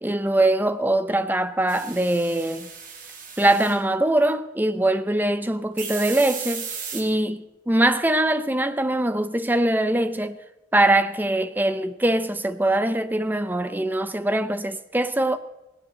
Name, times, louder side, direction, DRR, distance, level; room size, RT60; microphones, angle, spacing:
voice 1, 0.0-2.7 3.4-10.4 10.7-15.4, right 1 dB, 10° right, 0.7 m, -22 dB
sound 1, 1.7-3.8 5.8-7.0, right 6 dB, 45° right, 2.7 m, -35 dB
17.5 x 17.0 x 4.0 m
head